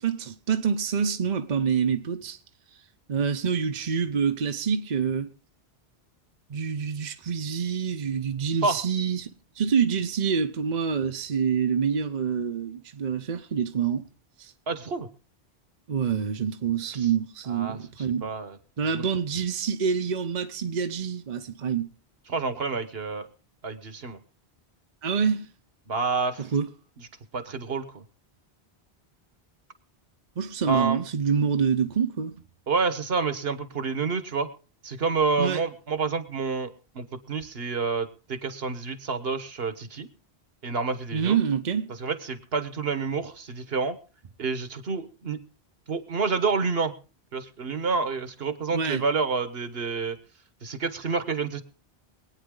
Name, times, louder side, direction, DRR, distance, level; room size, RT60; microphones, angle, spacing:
voice 1, 0.0-2.4 3.1-5.3 6.5-9.3 9.6-14.0 14.4-14.5 15.9-18.3 18.8-21.9 25.0-25.5 26.4-26.7 30.4-32.4 35.4-35.6 41.1-41.9 48.7-49.0, right 7 dB, 50° right, 0.9 m, -26 dB
voice 2, 14.7-15.1 17.5-17.8 18.2-18.6 18.9-19.0 22.3-23.3 23.6-24.2 25.9-26.5 27.3-28.0 30.7-31.0 32.7-34.5 34.8-36.7 36.9-40.1 40.6-41.4 42.0-44.0 44.4-45.4 45.9-46.9 47.3-50.2 50.6-51.6, right 4 dB, 70° right, 1.4 m, -28 dB
23.5 x 9.2 x 3.8 m
omnidirectional pair, 1.0 m